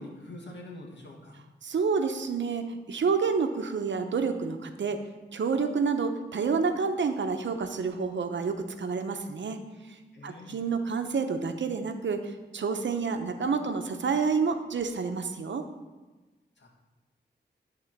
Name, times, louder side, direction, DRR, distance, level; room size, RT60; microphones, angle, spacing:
voice 1, 0.0-1.4 10.1-10.6 16.6-16.7, left 1 dB, 75° left, -1 dB, 1.8 m, -44 dB
voice 2, 1.6-5.0 5.3-9.6 10.2-15.7, right 5 dB, 80° right, 6 dB, 0.8 m, -29 dB
11.0 x 3.8 x 5.9 m, 1.2 s
wide cardioid pair, 80°, 19 cm